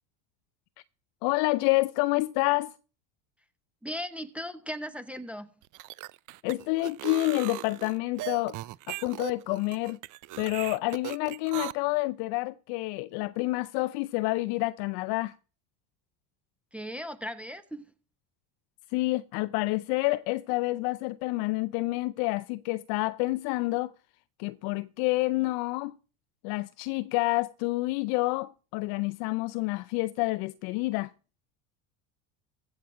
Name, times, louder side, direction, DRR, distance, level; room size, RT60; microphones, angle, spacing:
voice 1, 1.2-2.7 6.4-8.6 8.9-10.0 10.4-15.3 18.9-23.9 24.4-26.0 26.4-31.1, left 21 dB, 65° left, 0.6 m, -28 dB
voice 2, 3.8-5.5 16.7-17.9, equal, 5° right, 1.0 m, -37 dB
sound 1, 5.6-11.7, right 17 dB, 45° right, 0.5 m, -38 dB
15.5 x 5.4 x 7.5 m
hypercardioid pair, 85°, 45 cm